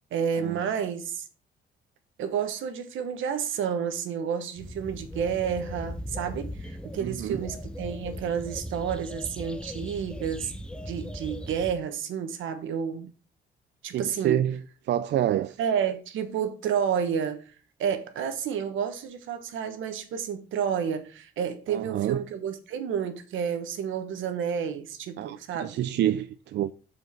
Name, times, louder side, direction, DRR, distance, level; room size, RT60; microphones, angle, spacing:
voice 1, 0.1-1.2 2.2-10.5 10.9-13.0 13.8-14.4 15.6-17.4 17.8-25.8, right 7 dB, 80° right, 1.1 m, -30 dB
sound 1, 4.6-11.7, equal, 5° left, 0.7 m, -38 dB
voice 2, 7.0-7.4 13.9-14.6 14.8-15.6 21.7-22.2 25.2-26.7, right 12 dB, 60° right, 0.4 m, -28 dB
6.2 x 4.6 x 4.5 m
cardioid pair, 90°, 20 cm